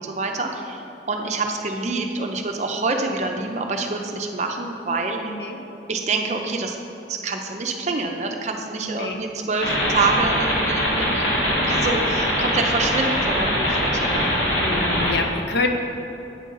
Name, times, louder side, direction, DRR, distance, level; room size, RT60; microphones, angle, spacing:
voice 1, 0.0-5.4 5.9-6.8 7.1-14.3, right 3 dB, 40° right, 3 dB, 0.5 m, -26 dB
voice 2, 5.2-5.6 8.8-9.2 14.5-15.7, left 3 dB, 70° left, 4 dB, 0.6 m, -27 dB
sound 1, 9.6-15.1, equal, 90° left, 1.6 m, -22 dB
8.2 x 5.4 x 3.8 m, 2.9 s
head